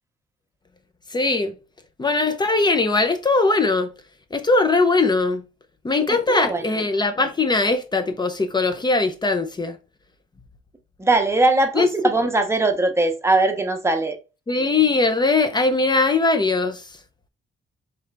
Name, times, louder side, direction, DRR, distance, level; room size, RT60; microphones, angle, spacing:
voice 1, 1.1-1.5 2.0-3.9 4.3-5.4 5.8-9.8 11.8-11.9 14.5-16.9, left 3 dB, 20° left, 0.6 m, -20 dB
voice 2, 6.3-6.6 11.0-14.2, right 2 dB, 15° right, 0.8 m, -20 dB
3.7 x 3.3 x 3.3 m
cardioid pair, 90°, 20 cm